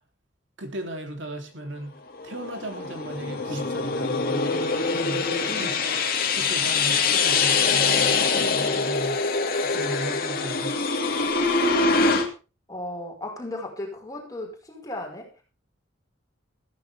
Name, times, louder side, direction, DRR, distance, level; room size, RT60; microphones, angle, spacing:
voice 1, 0.6-2.0 2.2-5.3 5.5-5.8 6.3-10.9, right 1 dB, 65° right, 4 dB, 3.4 m, -36 dB
sound 1, 2.1-12.3, left 4 dB, 50° left, 2.5 m, -24 dB
voice 2, 5.5-5.8 12.7-15.4, left 1 dB, 20° left, 1 dB, 5.3 m, -35 dB
15.0 x 14.5 x 3.6 m, 0.32 s
head